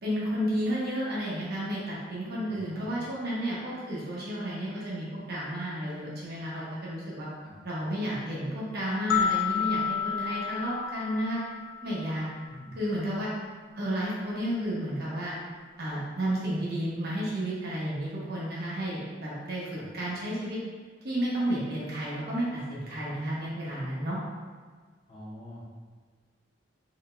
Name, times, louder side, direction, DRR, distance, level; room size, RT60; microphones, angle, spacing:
voice 1, 0.0-7.3 7.6-11.4 11.8-12.2 12.7-13.3 13.8-15.3 15.8-19.6 19.9-20.6 21.0-24.2, equal, 55° right, -7 dB, 1.0 m, -32 dB
voice 2, 2.5-2.8 7.4-7.6 12.5-12.8 19.8-19.9 25.1-25.6, equal, 25° left, -9 dB, 0.8 m, -45 dB
sound 1, 9.1-12.2, left 8 dB, 75° left, 0.5 m, -30 dB
3.9 x 3.7 x 2.2 m, 1.5 s
head